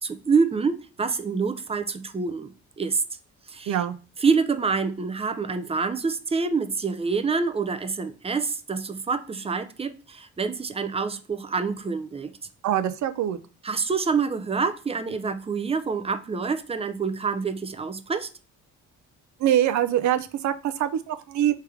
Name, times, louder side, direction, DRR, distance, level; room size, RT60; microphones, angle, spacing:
voice 1, 0.0-3.0 3.5-3.8 4.2-12.3 13.6-18.3, right 5 dB, 20° right, 0.5 m, -26 dB
voice 2, 12.6-13.4 19.4-21.5, right 11 dB, 70° right, 0.5 m, -24 dB
3.4 x 3.3 x 4.7 m
cardioid pair, 90°, 30 cm